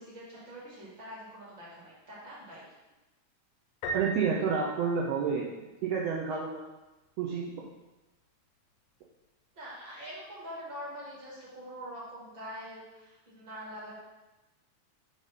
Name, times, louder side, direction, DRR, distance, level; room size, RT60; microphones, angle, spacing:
voice 1, 0.0-2.7 9.5-14.0, equal, 45° right, -6 dB, 2.0 m, -44 dB
Piano, 3.8-5.7, right 2 dB, 90° left, 2.2 m, -38 dB
voice 2, 3.9-5.5 5.8-6.6 7.2-7.7, right 6 dB, 75° right, -3 dB, 1.5 m, -29 dB
5.2 x 3.3 x 5.5 m, 1.1 s
omnidirectional pair, 3.4 m